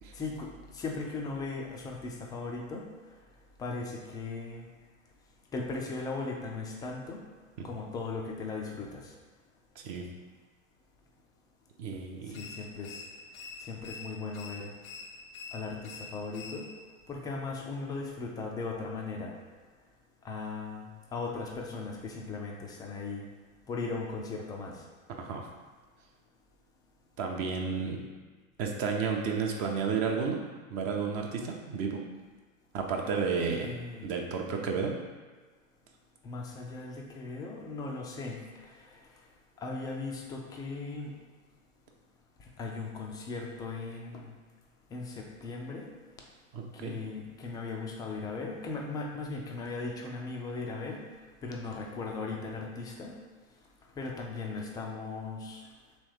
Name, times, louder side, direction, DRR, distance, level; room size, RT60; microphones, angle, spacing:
voice 1, 0.1-2.9 3.6-4.7 5.5-7.2 7.6-9.1 12.4-13.0 13.6-14.7 15.5-16.7 17.1-19.3 20.2-23.2 23.7-24.8 33.6-34.1 36.2-38.4 38.7-38.9 39.6-41.1 42.6-44.3 44.9-45.9 46.7-51.0 51.4-53.1 54.0-55.6, left 3 dB, 10° left, 0 dB, 0.3 m, -38 dB
voice 2, 11.8-12.5 25.1-25.4 27.2-28.1 28.6-30.4 30.7-32.0 32.7-33.7 34.0-35.0 46.5-47.0, right 5 dB, 35° right, 1 dB, 0.6 m, -32 dB
sound 1, 12.3-17.0, left 4 dB, 90° left, 0.7 m, -46 dB
3.3 x 3.1 x 4.8 m, 1.4 s
hypercardioid pair, 95°, 40 cm